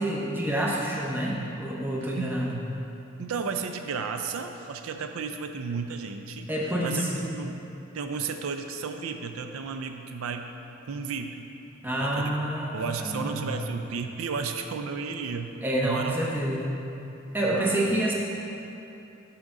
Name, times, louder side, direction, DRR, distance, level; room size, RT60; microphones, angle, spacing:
voice 1, 0.0-2.5 6.5-7.2 11.8-13.5 15.6-16.8 17.3-18.1, right 1 dB, 10° right, -3 dB, 0.6 m, -28 dB
voice 2, 3.2-7.1 7.3-7.6 7.9-10.5 10.8-11.5 12.0-12.4 12.7-16.2 17.5-17.9, right 5 dB, 90° right, 6 dB, 0.4 m, -33 dB
6.4 x 5.9 x 3.7 m, 2.9 s
head